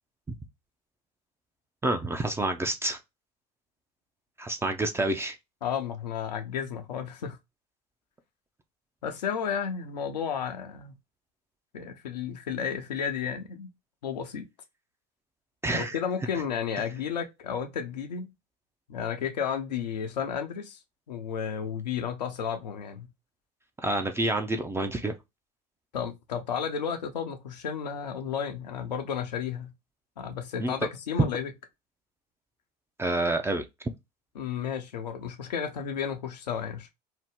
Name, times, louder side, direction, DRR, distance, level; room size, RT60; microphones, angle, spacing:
voice 1, 1.8-3.0 4.4-5.4 15.6-16.0 23.8-25.2 30.6-30.7 33.0-33.6, right 2 dB, 10° right, 0.4 m, -28 dB
voice 2, 5.6-7.4 9.0-10.9 11.7-13.7 14.0-14.4 15.7-18.3 18.9-20.8 21.1-23.1 25.9-29.7 30.2-31.5 34.3-36.9, left 7 dB, 85° left, 0.6 m, -32 dB
2.8 x 2.0 x 3.5 m
hypercardioid pair, 75°, 21 cm